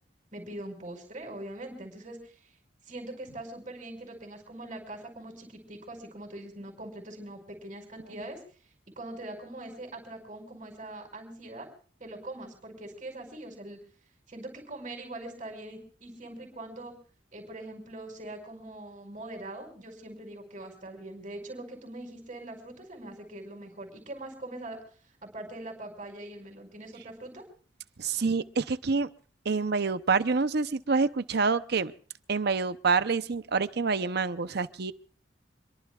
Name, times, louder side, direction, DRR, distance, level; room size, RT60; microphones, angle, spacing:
voice 1, 0.3-2.5 2.8-8.4 8.9-11.7 12.0-13.8 14.3-16.9 17.3-24.8 25.2-27.4, right 1 dB, 40° right, 0 dB, 5.0 m, -42 dB
voice 2, 28.0-29.1 29.4-31.9 32.3-34.9, right 4 dB, 65° right, 12 dB, 0.7 m, -27 dB
26.5 x 22.5 x 2.4 m, 0.42 s
head